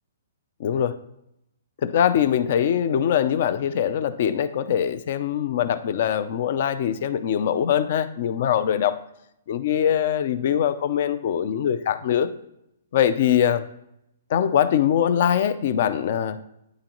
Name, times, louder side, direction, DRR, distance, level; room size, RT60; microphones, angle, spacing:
voice 1, 0.6-1.0 1.8-9.0 9.5-12.3 12.9-13.6 14.3-16.4, left 9 dB, 50° left, 13 dB, 0.4 m, -22 dB
9.5 x 3.8 x 3.0 m, 0.80 s
hypercardioid pair, 155°, 0 cm